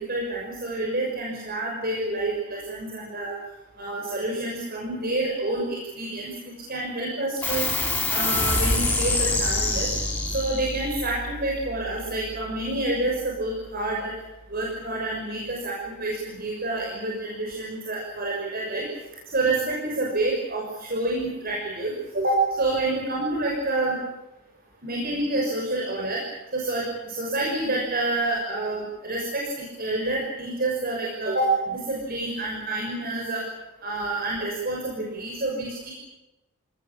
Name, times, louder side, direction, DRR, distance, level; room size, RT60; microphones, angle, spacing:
voice 1, 0.1-3.4 3.8-6.3 6.7-7.7 8.1-9.9 10.3-14.1 14.5-18.8 19.3-24.0 24.8-26.2 26.5-29.4 29.8-33.4 33.8-35.9, right 2 dB, 50° right, -1 dB, 6.4 m, -28 dB
sound 1, 7.4-14.3, left 2 dB, 5° left, 7.0 m, -28 dB
28.0 x 19.5 x 8.8 m, 0.99 s
head